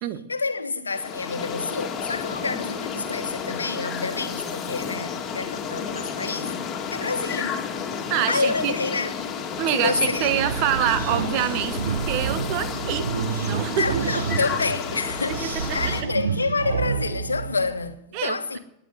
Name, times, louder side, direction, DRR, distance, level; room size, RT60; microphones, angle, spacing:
voice 1, 0.3-6.5 6.9-7.6 8.3-9.2 9.7-10.3 13.8-18.6, left 4 dB, 75° left, 1.2 m, -28 dB
sound 1, 0.9-16.0, left 6 dB, 25° left, 2.5 m, -31 dB
voice 2, 8.1-8.7 9.6-13.1 13.4-14.0 15.3-15.5 18.1-18.4, right 11 dB, 45° right, 1.3 m, -26 dB
sound 2, 9.9-17.9, right 7 dB, 65° right, 0.7 m, -29 dB
20.5 x 8.3 x 7.9 m
figure-of-eight pair, 90°, 0 cm